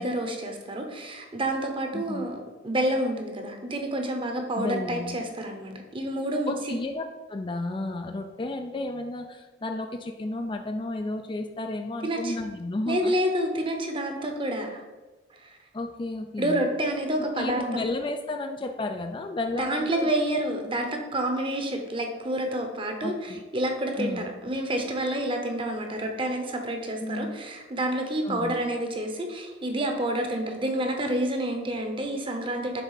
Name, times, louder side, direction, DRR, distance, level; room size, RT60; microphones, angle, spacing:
voice 1, 0.0-6.8 12.0-12.4 12.9-14.8 15.4-15.5 16.4-17.8 19.6-32.8, right 1 dB, 30° right, 4 dB, 0.9 m, -29 dB
voice 2, 1.9-2.3 4.6-5.2 6.5-7.0 7.3-13.1 15.7-16.6 17.4-20.1 23.0-23.4 24.0-24.4 27.0-27.4 28.2-28.6, left 2 dB, 25° left, 5 dB, 0.4 m, -32 dB
6.9 x 3.6 x 5.7 m, 1.2 s
head